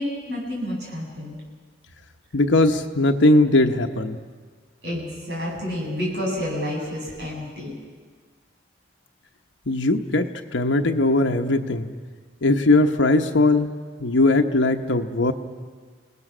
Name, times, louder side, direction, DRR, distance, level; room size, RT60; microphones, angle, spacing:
voice 1, 0.0-1.4 4.8-7.7, left 1 dB, 65° right, -3 dB, 7.8 m, -29 dB
voice 2, 2.3-4.2 9.7-11.9 12.4-13.7 14.0-15.3, left 2 dB, 90° left, 4 dB, 1.0 m, -19 dB
29.5 x 18.5 x 6.2 m, 1.5 s
head